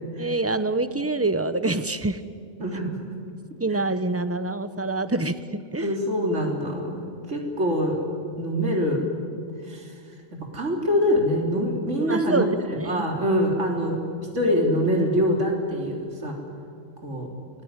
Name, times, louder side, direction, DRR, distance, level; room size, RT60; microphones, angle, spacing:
voice 1, 0.2-2.2 3.6-6.0 12.0-13.1, right 2 dB, 15° right, 11 dB, 0.8 m, -26 dB
voice 2, 2.6-3.0 5.8-8.0 8.4-9.0 9.6-9.9 10.5-12.6 12.9-14.0 14.3-16.4 17.0-17.3, equal, 65° right, 1 dB, 3.9 m, -24 dB
28.5 x 20.5 x 9.7 m, 2.3 s
omnidirectional pair, 1.3 m